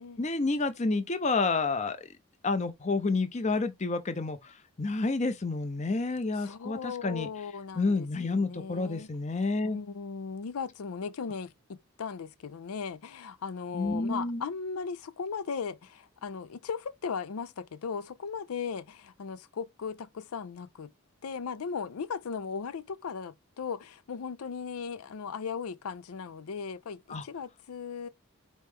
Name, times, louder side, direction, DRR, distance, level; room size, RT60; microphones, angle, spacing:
voice 1, 0.2-2.1 2.4-7.3 7.7-9.8 13.7-14.4 27.1-27.2, left 3 dB, 30° left, 0.6 m, -29 dB
voice 2, 6.4-9.1 9.6-20.9 21.2-28.1, left 5 dB, 80° left, 0.5 m, -37 dB
4.3 x 3.1 x 3.5 m
head